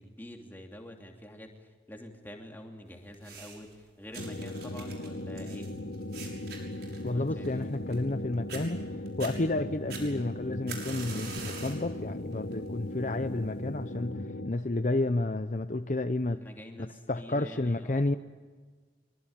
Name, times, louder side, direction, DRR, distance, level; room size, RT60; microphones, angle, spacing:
voice 1, 0.0-5.7 7.1-7.8 16.4-18.0, left 1 dB, 10° left, 2 dB, 3.0 m, -47 dB
sound 1, 3.1-3.7 4.1-8.2 8.5-8.6 9.1-9.3 9.9-11.9 12.3-12.7 13.5-13.6, right 5 dB, 65° right, 6.4 m, -44 dB
sound 2, 4.2-14.5, left 1 dB, 70° left, 1.4 m, -38 dB
voice 2, 7.0-8.8 9.2-16.4 17.1-18.2, left 2 dB, 45° left, 10 dB, 0.7 m, -31 dB
24.0 x 24.0 x 9.0 m, 1.5 s
head